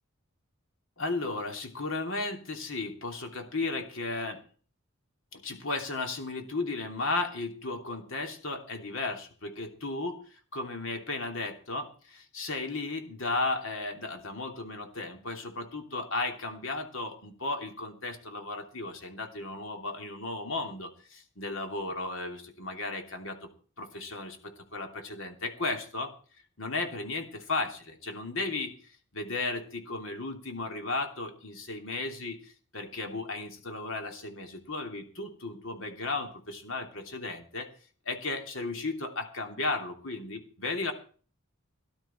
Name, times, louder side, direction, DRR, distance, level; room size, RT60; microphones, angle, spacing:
voice 1, 1.0-4.4 5.3-23.5 23.8-26.1 26.6-37.7 38.0-40.9, left 3 dB, 65° left, 4 dB, 2.9 m, -35 dB
17.5 x 12.0 x 4.4 m, 0.42 s
head